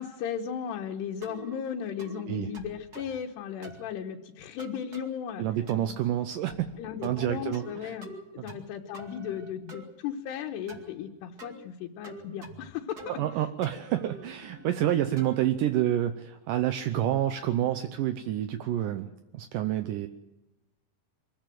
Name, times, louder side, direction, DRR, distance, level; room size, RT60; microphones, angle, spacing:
voice 1, 0.0-5.4 6.8-13.2, left 8 dB, 80° left, 1 dB, 3.2 m, -36 dB
sound 1, 1.2-1.6 2.0-2.2 2.5-3.2 3.6-3.9 4.6-5.1 5.7-6.0 6.5-6.8 7.0-7.7 8.0-8.7 8.9-9.8 10.7-10.9 11.4-11.6 12.0-12.7 13.0-13.3 13.6-15.4, right 2 dB, 30° right, 2.1 m, -46 dB
voice 2, 5.4-6.7 7.0-8.0 13.1-20.1, right 12 dB, 80° right, 8 dB, 2.0 m, -28 dB
24.5 x 15.5 x 7.7 m, 0.99 s
omnidirectional pair, 4.8 m